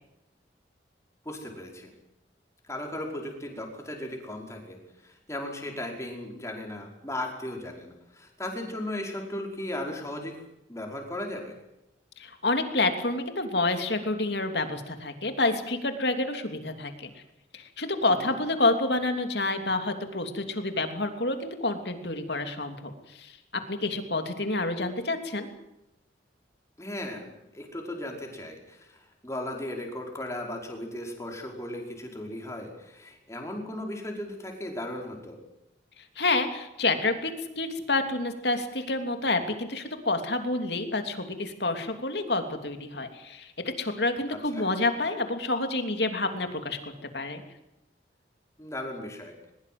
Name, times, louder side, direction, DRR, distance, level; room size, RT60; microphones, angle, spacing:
voice 1, 1.3-1.9 2.7-10.4 10.7-11.5 18.1-18.4 26.8-35.4 44.3-44.7 48.6-49.4, left 1 dB, 15° left, 1 dB, 5.2 m, -36 dB
voice 2, 12.2-17.1 17.5-25.5 36.2-43.5 43.8-47.4, left 2 dB, 65° left, 6 dB, 3.1 m, -28 dB
22.0 x 21.5 x 7.9 m, 0.90 s
head